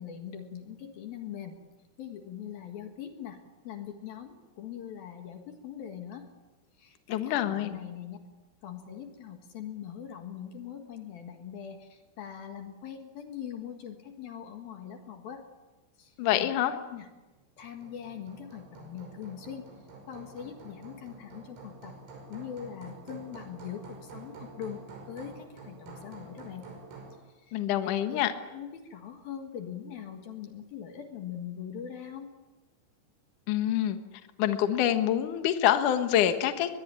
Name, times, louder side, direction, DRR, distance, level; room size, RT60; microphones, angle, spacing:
voice 1, 0.0-1.6 2.0-3.4 3.6-6.3 6.8-8.2 8.6-15.5 16.0-16.6 16.9-17.1 17.6-19.7 20.1-22.0 22.3-26.6 27.4-28.2 28.5-32.3, left 9 dB, 60° left, 5 dB, 2.8 m, -42 dB
voice 2, 7.1-7.8 16.2-16.8 27.5-28.3 33.5-34.0 34.4-36.7, left 11 dB, 80° left, 8 dB, 1.8 m, -26 dB
Hammer, 17.6-27.2, right 3 dB, 75° right, 8.0 m, -48 dB
21.5 x 21.5 x 10.0 m, 1.2 s
omnidirectional pair, 5.9 m